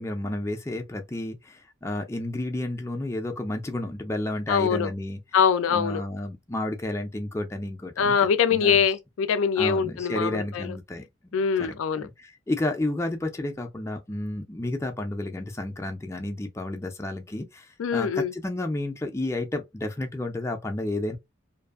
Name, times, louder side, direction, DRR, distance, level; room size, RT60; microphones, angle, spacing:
voice 1, 0.0-5.2 5.7-8.2 8.5-8.8 9.6-11.1 11.3-21.2, left 1 dB, 15° left, 0.4 m, -31 dB
voice 2, 4.5-4.9 5.3-6.0 8.0-10.7 11.3-12.1 17.8-18.3, left 6 dB, 85° left, 0.4 m, -23 dB
2.6 x 2.4 x 2.3 m
head